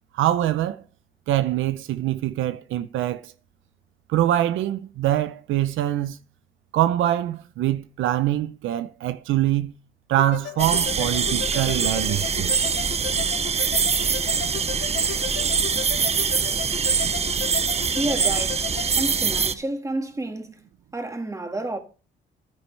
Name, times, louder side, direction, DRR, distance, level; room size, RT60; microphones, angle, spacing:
voice 1, 0.1-0.8 1.3-3.3 4.1-6.2 6.7-9.7 10.1-12.8, right 13 dB, 80° right, 0.6 m, -24 dB
sound 1, 10.2-18.9, left 13 dB, 70° left, 0.7 m, -36 dB
sound 2, 10.6-19.5, right 6 dB, 30° right, 0.7 m, -24 dB
voice 2, 17.9-18.7 19.0-21.8, right 2 dB, 15° right, 1.8 m, -30 dB
10.5 x 9.6 x 3.3 m
cardioid pair, 90°, 20 cm